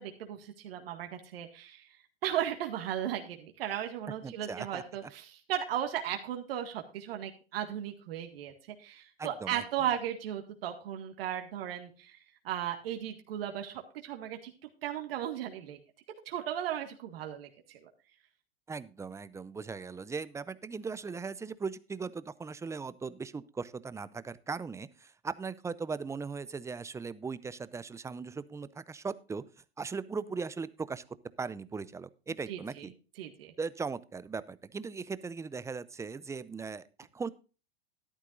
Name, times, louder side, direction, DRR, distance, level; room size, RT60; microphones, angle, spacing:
voice 1, 0.0-14.5 14.8-15.8 16.3-17.9 32.5-32.9 33.2-33.5, right 10 dB, 65° right, 4 dB, 1.8 m, -36 dB
voice 2, 4.2-5.1 9.2-9.6 18.7-31.0 31.4-32.9 33.6-37.3, right 5 dB, 10° right, 17 dB, 0.5 m, -39 dB
13.5 x 11.0 x 2.5 m, 0.34 s
hypercardioid pair, 105°, 31 cm